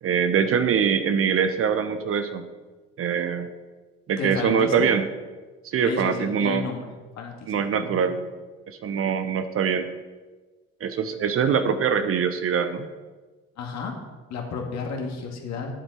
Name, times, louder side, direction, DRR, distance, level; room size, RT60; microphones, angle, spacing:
voice 1, 0.0-2.4 3.0-3.5 4.1-5.0 5.6-6.7 7.5-8.2 8.7-9.9 10.8-12.9, right 7 dB, 40° right, 9 dB, 0.9 m, -23 dB
voice 2, 4.2-4.9 5.9-6.9 7.1-8.2 11.5-11.6 13.6-14.0 14.3-15.7, left 5 dB, 55° left, 1 dB, 2.1 m, -32 dB
10.0 x 8.1 x 4.5 m, 1.3 s
hypercardioid pair, 60°, 33 cm